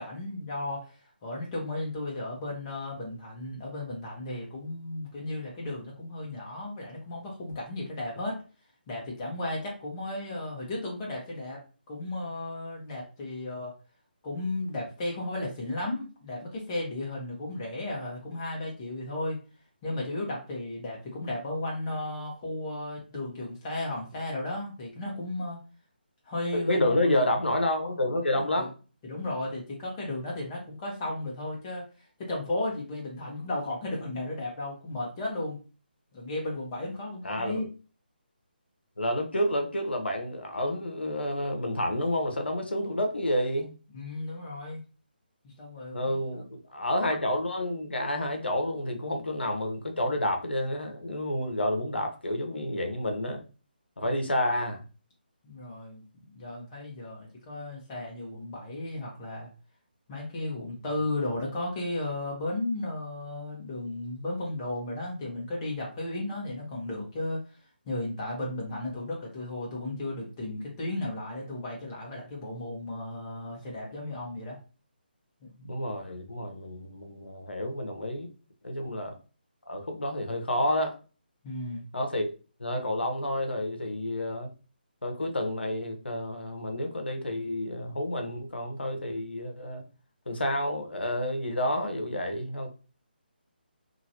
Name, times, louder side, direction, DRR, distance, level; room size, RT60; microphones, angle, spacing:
voice 1, 0.0-8.4 8.9-13.7 14.2-19.4 19.8-25.6 26.2-27.2 28.3-28.7 29.0-31.9 32.2-35.6 36.1-37.6 43.9-44.8 45.4-46.4 54.0-54.1 55.4-56.0 56.3-59.5 60.1-67.6 67.9-74.6 75.4-75.7 78.8-78.9 81.4-81.8, left 2 dB, 25° left, -3 dB, 1.1 m, -34 dB
voice 2, 26.5-28.7 37.2-37.7 39.0-43.7 45.9-53.4 54.0-54.8 75.6-78.3 78.6-79.1 79.7-81.0 81.9-82.3 82.6-84.5 85.0-89.8 90.3-92.7, left 1 dB, 85° left, 3 dB, 0.8 m, -29 dB
2.9 x 2.5 x 2.8 m, 0.35 s
figure-of-eight pair, 150°, 6 cm